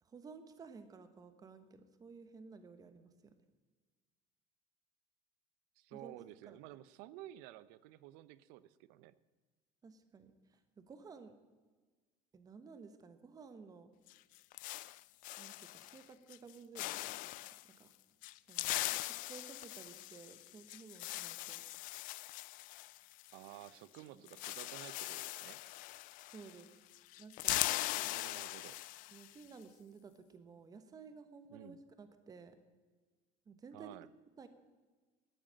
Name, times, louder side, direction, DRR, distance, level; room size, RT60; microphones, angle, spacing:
voice 1, 0.0-3.3 5.9-6.1 6.4-6.6 9.8-11.3 12.3-13.9 15.4-17.9 18.5-21.6 24.1-24.2 26.3-26.7 27.2-27.7 29.1-32.6 33.5-34.0 34.4-34.5, right 5 dB, 25° right, 10 dB, 1.2 m, -55 dB
voice 2, 5.8-9.1 23.3-25.6 27.9-28.8 31.5-31.8 33.7-34.1, right 15 dB, 80° right, 18 dB, 0.6 m, -53 dB
sound 1, 14.1-16.0 16.3-16.5 16.8-17.6 18.2-23.7 23.9-24.0 24.3-26.7 26.9-29.3, left 19 dB, 60° left, 0.4 m, -41 dB
13.0 x 9.1 x 8.6 m, 1.4 s
cardioid pair, 140°, 15 cm